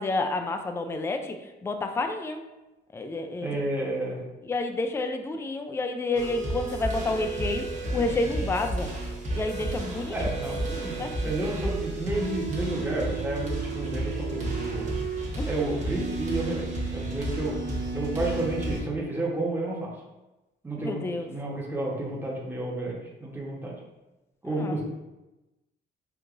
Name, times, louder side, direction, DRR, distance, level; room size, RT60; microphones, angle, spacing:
voice 1, 0.0-1.4 1.6-2.4 2.9-3.6 4.4-7.7 7.9-8.9 9.3-10.1 10.6-11.4 15.4-15.5 20.8-21.3 24.5-24.8, left 2 dB, 15° left, 5 dB, 0.3 m, -29 dB
voice 2, 3.4-4.3 10.1-14.9 15.4-19.9 20.6-23.7 24.4-24.8, right 2 dB, 10° right, -3 dB, 1.0 m, -31 dB
sound 1, 6.1-18.8, right 2 dB, 35° right, 1.1 m, -32 dB
4.6 x 2.5 x 2.5 m, 1.0 s
cardioid pair, 90°, 20 cm